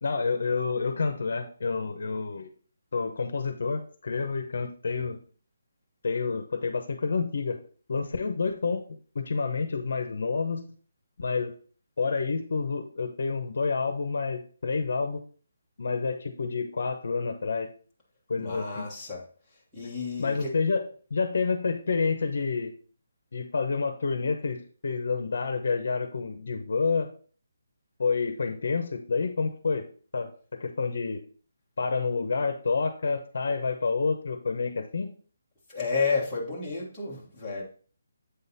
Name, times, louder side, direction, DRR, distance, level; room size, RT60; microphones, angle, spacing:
voice 1, 0.0-2.5 2.9-5.2 6.0-7.6 7.9-8.8 9.1-10.6 11.2-11.5 12.0-15.2 15.8-17.7 18.3-18.9 20.2-22.7 23.3-27.1 28.0-29.9 30.1-31.2 31.8-35.1, left 4 dB, 55° left, 8 dB, 0.8 m, -29 dB
voice 2, 18.4-19.2 19.7-20.5 35.7-37.6, left 4 dB, ahead, -11 dB, 1.4 m, -31 dB
8.1 x 3.9 x 4.1 m, 0.42 s
hypercardioid pair, 175°, 0 cm